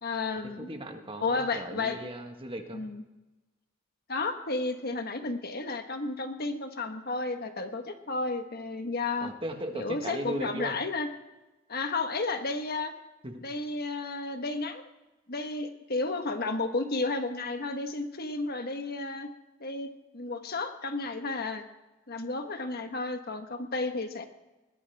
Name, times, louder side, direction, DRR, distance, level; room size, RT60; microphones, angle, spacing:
voice 1, 0.0-0.7 1.2-2.0 2.7-3.0 4.1-9.3 9.7-11.1 11.7-12.9 13.4-14.8 15.3-19.3 19.6-21.6 22.1-24.2, left 3 dB, 50° left, 6 dB, 1.4 m, -32 dB
voice 2, 0.6-2.9 9.2-10.8 13.2-13.4, right 1 dB, 25° right, 4 dB, 1.7 m, -37 dB
21.0 x 19.0 x 3.5 m, 1.1 s
head